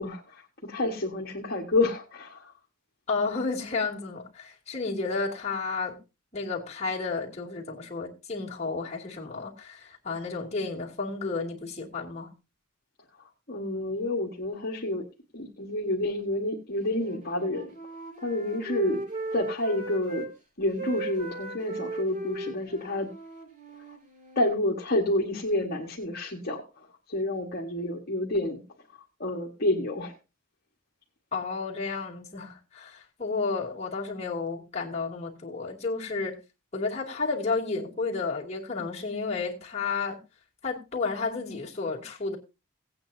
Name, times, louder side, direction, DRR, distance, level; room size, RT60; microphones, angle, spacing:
voice 1, 0.0-2.5 13.2-15.1 15.3-17.7 18.2-19.0 19.3-20.3 20.6-23.1 24.3-28.6 29.2-30.2, left 1 dB, 50° left, 1.5 m, -29 dB
voice 2, 3.1-6.0 6.3-12.3 31.3-36.4 36.7-40.2 40.6-42.4, left 4 dB, 30° left, 2.4 m, -32 dB
Wind instrument woodwind instrument, 16.9-20.3 20.6-24.5, right 2 dB, 35° right, 2.6 m, -37 dB
17.5 x 8.7 x 2.7 m
head